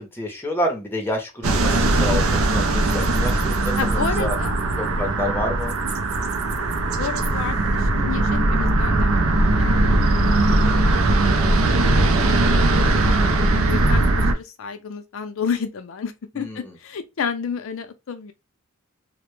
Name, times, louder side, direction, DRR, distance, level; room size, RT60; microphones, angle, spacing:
voice 1, 0.0-4.3 4.8-5.8 16.4-16.6, equal, 10° left, 0.6 m, -28 dB
sound 1, 1.4-14.3, right 2 dB, 75° right, 0.4 m, -19 dB
voice 2, 3.8-4.6 6.9-10.9 12.9-13.4 13.6-18.3, left 6 dB, 65° left, 0.4 m, -31 dB
2.1 x 2.0 x 3.0 m
head